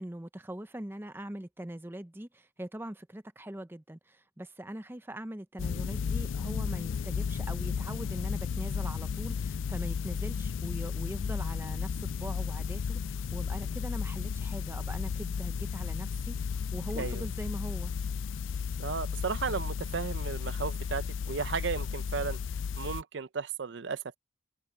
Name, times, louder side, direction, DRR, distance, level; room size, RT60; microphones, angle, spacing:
voice 1, 0.0-17.9, right 1 dB, 10° right, 0.6 m, -42 dB
sound 1, 5.6-23.0, left 6 dB, 70° left, 0.3 m, -34 dB
voice 2, 18.8-22.4 22.8-24.2, right 5 dB, 60° right, 0.5 m, -34 dB
open air
head